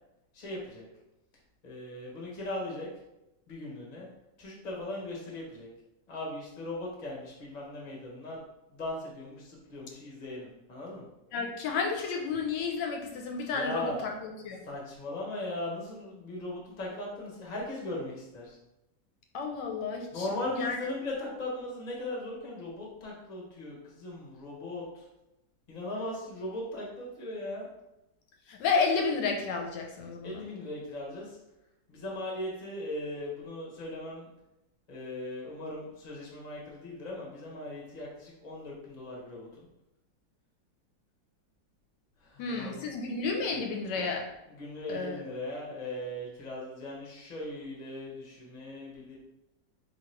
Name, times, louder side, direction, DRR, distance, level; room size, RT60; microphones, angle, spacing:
voice 1, 0.3-0.8 1.6-2.9 3.5-4.1 4.4-5.7 6.1-8.4 8.7-11.1 13.5-14.1 14.6-18.6 20.1-25.0 25.7-27.6 30.2-31.4 31.9-34.3 34.9-39.7 42.2-43.1 44.6-49.2, left 1 dB, 35° left, -3 dB, 0.8 m, -38 dB
voice 2, 11.3-14.6 19.3-20.8 28.5-30.4 42.4-44.3 44.9-45.2, left 4 dB, 80° left, 1 dB, 1.2 m, -31 dB
2.9 x 2.8 x 4.3 m, 0.93 s
omnidirectional pair, 1.9 m